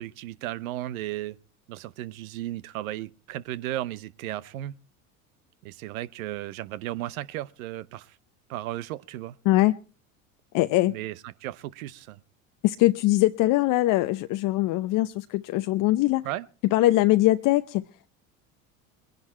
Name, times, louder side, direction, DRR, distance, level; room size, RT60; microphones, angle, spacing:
voice 1, 0.0-1.4 1.7-4.8 5.6-8.1 8.5-9.3 10.9-12.2 16.2-16.5, right 14 dB, 70° right, 1.0 m, -35 dB
voice 2, 10.5-10.9 12.6-16.3 16.7-17.8, left 17 dB, 50° left, 0.7 m, -22 dB
21.5 x 11.0 x 4.3 m
hypercardioid pair, 75°, 43 cm